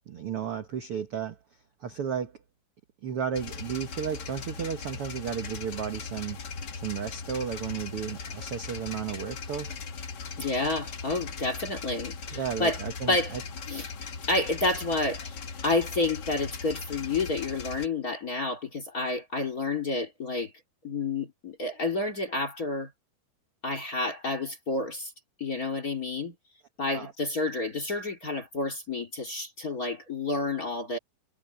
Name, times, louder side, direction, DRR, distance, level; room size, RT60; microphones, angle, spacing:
voice 1, 0.1-1.4 1.8-2.3 3.0-6.4 6.7-9.7 12.3-13.4 26.9-27.1, right 8 dB, 60° right, 1.5 m, -33 dB
sound 1, 3.3-17.9, left 5 dB, 65° left, 1.0 m, -39 dB
voice 2, 10.4-12.8 13.1-13.4 13.7-13.9 14.3-15.4 15.6-20.5 20.8-22.9 23.6-25.1 25.4-26.3 26.8-31.0, left 2 dB, 30° left, 2.3 m, -29 dB
omnidirectional pair, 4.4 m